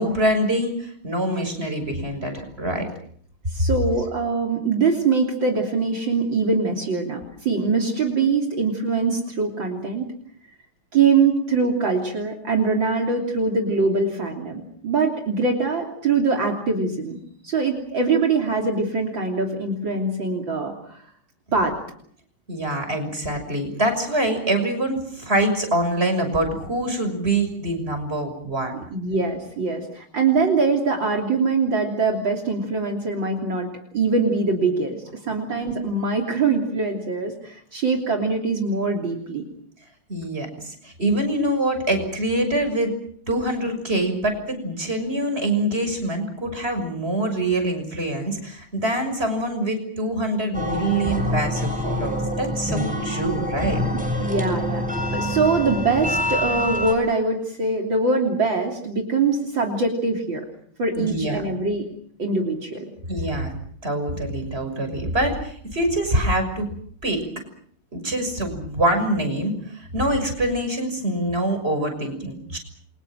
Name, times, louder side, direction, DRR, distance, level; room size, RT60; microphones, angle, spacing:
voice 1, 0.0-2.9 22.5-28.7 40.1-42.9 43.3-53.8 60.9-61.4 63.1-63.5 63.8-66.7 67.0-67.2 67.9-72.6, right 1 dB, 25° right, 6 dB, 6.5 m, -25 dB
voice 2, 3.5-10.1 10.9-17.2 17.4-21.0 21.5-21.8 28.9-39.4 43.4-43.5 53.9-54.9 55.1-60.5 60.8-61.8 62.2-62.9, right 4 dB, 60° right, 1 dB, 3.9 m, -23 dB
sound 1, 50.5-56.9, left 1 dB, 5° right, 7.1 m, -26 dB
29.0 x 25.0 x 6.3 m, 0.62 s
omnidirectional pair, 2.3 m